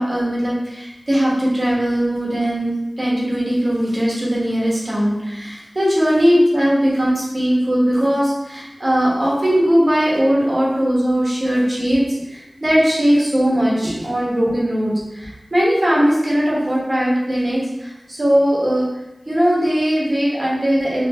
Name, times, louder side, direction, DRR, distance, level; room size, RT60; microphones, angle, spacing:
voice 1, 0.0-18.9 19.3-21.1, equal, 45° right, -6 dB, 1.4 m, -19 dB
3.6 x 3.3 x 3.0 m, 0.96 s
wide cardioid pair, 55°, 0 cm